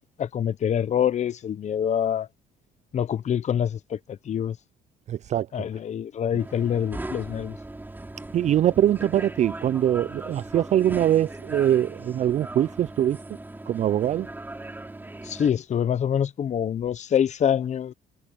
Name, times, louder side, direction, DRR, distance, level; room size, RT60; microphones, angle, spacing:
voice 1, 0.2-2.3 2.9-4.6 5.5-7.6 15.2-17.9, left 9 dB, 45° left, 0.9 m, -25 dB
voice 2, 5.1-5.5 8.3-13.2 13.7-14.3, right 11 dB, 45° right, 0.4 m, -23 dB
sound 1, 6.4-15.5, right 2 dB, 10° right, 4.0 m, -38 dB
cardioid pair, 110°, 17 cm